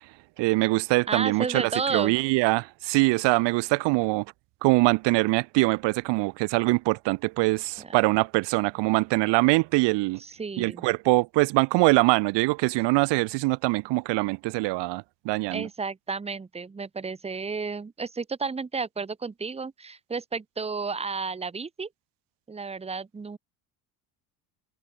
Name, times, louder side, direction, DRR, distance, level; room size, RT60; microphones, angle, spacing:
voice 1, 0.4-4.2 4.6-10.2 10.6-15.7, right 23 dB, 90° right, 0.6 m, -23 dB
voice 2, 1.1-2.1 7.8-8.0 10.2-10.8 15.5-21.9 22.5-23.4, right 4 dB, 15° right, 1.1 m, -32 dB
cardioid pair, 150°, 41 cm